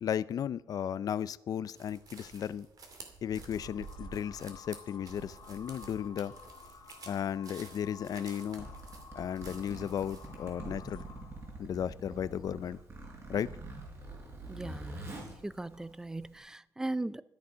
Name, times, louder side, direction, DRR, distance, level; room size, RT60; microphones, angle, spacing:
voice 1, 0.0-2.7 3.2-6.3 7.1-8.7 9.2-11.0 11.6-12.8 13.3-13.5, left 9 dB, 55° left, 0.5 m, -35 dB
sound 1, 1.8-10.3, right 4 dB, 55° right, 2.5 m, -51 dB
sound 2, 3.5-11.5, left 6 dB, 75° left, 1.4 m, -53 dB
Zipper (clothing), 8.4-16.4, right 2 dB, 35° right, 4.5 m, -46 dB
voice 2, 14.5-15.0 15.4-17.2, right 2 dB, 10° right, 0.4 m, -38 dB
13.5 x 10.5 x 5.6 m
wide cardioid pair, 160°, 8 cm